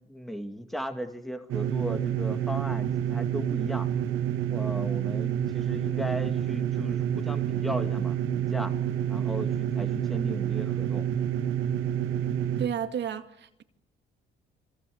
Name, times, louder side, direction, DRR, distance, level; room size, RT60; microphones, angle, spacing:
voice 1, 0.0-3.9 4.5-8.7 9.1-11.1, equal, ahead, 2.3 m, -36 dB
sound 1, 1.5-12.7, right 10 dB, 80° right, 2.0 m, -28 dB
voice 2, 12.6-13.6, right 9 dB, 65° right, 2.2 m, -32 dB
27.5 x 25.5 x 7.9 m
cardioid pair, 90°, 20 cm